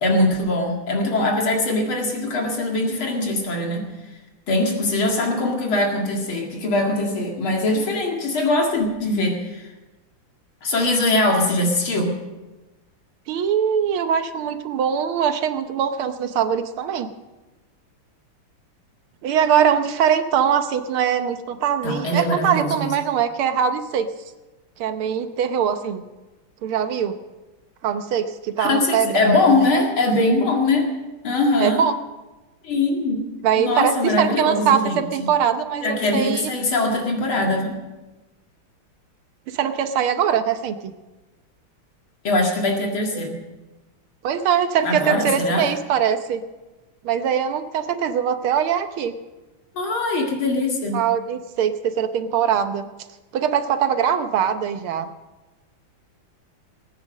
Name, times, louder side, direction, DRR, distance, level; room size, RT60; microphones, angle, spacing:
voice 1, 0.0-3.8 4.5-9.7 10.6-12.1 21.8-22.9 28.6-30.9 31.2-31.8 32.6-33.2 33.6-35.1 35.8-37.8 42.2-43.4 44.8-45.7 49.7-51.0, left 2 dB, 70° left, 1 dB, 2.9 m, -22 dB
voice 2, 13.3-17.1 19.2-24.1 24.8-26.0 26.6-27.2 27.8-29.7 31.6-31.9 33.4-36.5 39.5-40.9 44.2-46.4 47.0-49.1 50.9-52.9 53.3-55.1, right 8 dB, 75° right, 9 dB, 1.8 m, -22 dB
19.0 x 9.6 x 6.4 m, 1.1 s
omnidirectional pair, 2.4 m